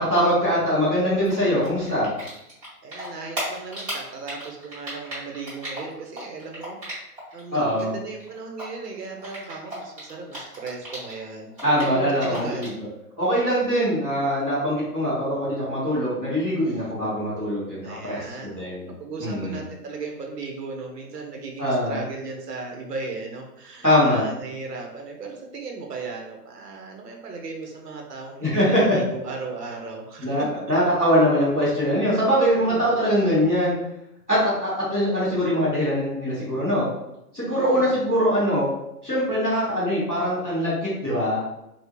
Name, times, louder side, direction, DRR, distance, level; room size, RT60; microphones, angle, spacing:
voice 1, 0.0-2.1 7.5-7.9 11.6-12.7 13.2-18.9 19.2-19.6 21.6-22.0 23.8-24.3 28.4-29.0 30.2-33.8 34.3-36.9 37.3-38.7 39.0-41.4, equal, ahead, -26 dB, 0.7 m, -22 dB
Typing, 1.2-2.7 2.9-7.4 7.7-11.2 11.5-12.8, equal, 20° right, 1.2 m, -35 dB
voice 2, 2.8-6.8 7.3-11.5 11.8-12.7 16.6-16.9 17.8-30.7 32.6-32.9 37.4-38.1, right 4 dB, 80° right, 2 dB, 0.9 m, -36 dB
3.6 x 2.3 x 2.9 m, 0.85 s
hypercardioid pair, 170°, 47 cm